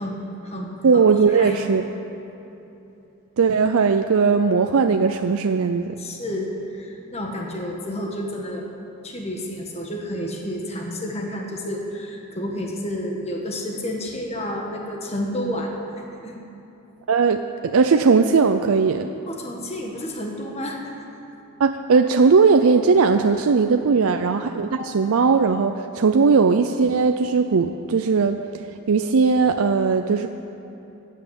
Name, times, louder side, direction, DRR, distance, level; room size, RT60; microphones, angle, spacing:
voice 1, 0.0-1.1 1.3-1.6 2.3-2.4 6.0-8.7 9.0-15.7 16.2-16.4 19.3-20.9 24.8-24.9, equal, 30° left, 0 dB, 1.4 m, -30 dB
voice 2, 0.8-1.8 3.4-5.9 17.1-19.1 21.6-28.4 28.9-30.3, right 5 dB, 75° right, 7 dB, 0.5 m, -18 dB
15.0 x 9.1 x 8.0 m, 3.0 s
head